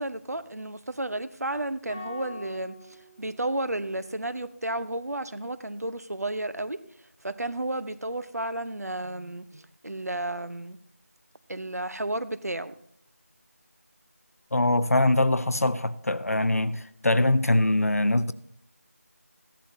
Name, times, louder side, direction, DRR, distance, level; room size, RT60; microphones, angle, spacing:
voice 1, 0.0-6.8 7.2-10.8 11.5-12.7, right 1 dB, 85° right, 0.9 m, -32 dB
sound 1, 1.9-4.2, left 2 dB, 15° left, 1.5 m, -45 dB
voice 2, 14.5-18.3, left 1 dB, 70° left, 0.7 m, -23 dB
15.0 x 11.5 x 2.7 m
figure-of-eight pair, 180°, 8 cm